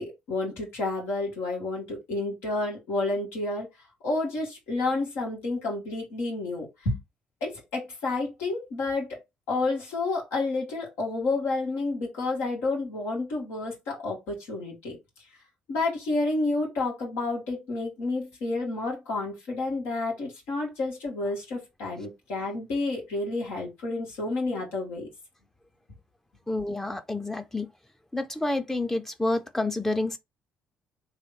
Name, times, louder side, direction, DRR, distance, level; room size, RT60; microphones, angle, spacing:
voice 1, 0.0-3.7 4.0-7.0 7.4-9.2 9.5-15.0 15.7-25.1, left 2 dB, 70° left, 1.9 m, -30 dB
voice 2, 26.5-27.7 28.1-30.2, left 2 dB, 10° left, 0.7 m, -29 dB
3.4 x 3.0 x 4.1 m
figure-of-eight pair, 50°, 4 cm